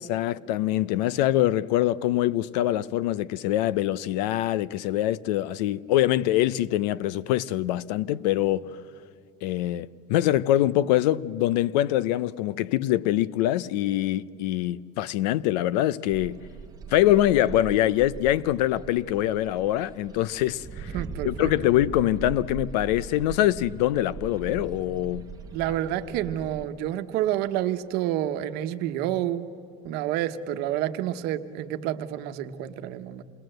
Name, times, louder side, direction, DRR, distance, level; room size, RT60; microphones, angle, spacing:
voice 1, 0.1-8.8 9.4-16.4 16.9-20.9 21.2-25.3, left 13 dB, 80° left, 0.7 m, -24 dB
sound 1, 16.1-26.6, right 5 dB, 20° right, 1.1 m, -40 dB
voice 2, 20.9-21.5 25.5-29.4 29.8-33.2, right 12 dB, 50° right, 1.1 m, -29 dB
28.0 x 20.5 x 7.8 m
cardioid pair, 165°, 21 cm